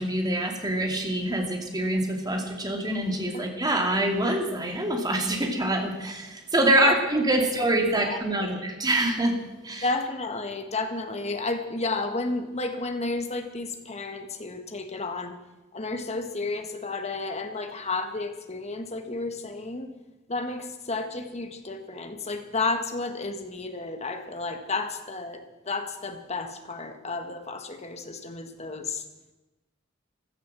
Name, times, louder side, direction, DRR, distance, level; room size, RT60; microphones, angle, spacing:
voice 1, 0.0-9.4 9.6-9.8, right 1 dB, 20° right, 2 dB, 2.5 m, -25 dB
voice 2, 8.0-8.6 9.8-15.4 15.7-19.9 20.3-29.0, left 3 dB, 30° left, 6 dB, 1.6 m, -32 dB
15.0 x 12.5 x 7.6 m, 1.1 s
head